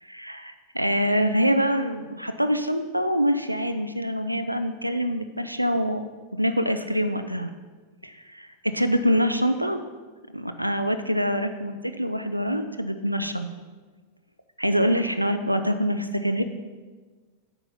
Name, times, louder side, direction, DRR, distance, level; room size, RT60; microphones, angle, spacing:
voice 1, 0.0-6.0 6.3-7.5 8.0-8.1 8.7-9.8 10.3-13.5 14.6-16.4, equal, 90° right, 8 dB, 0.5 m, -25 dB
9.0 x 6.0 x 5.5 m, 1.4 s
figure-of-eight pair, 90°, 0 cm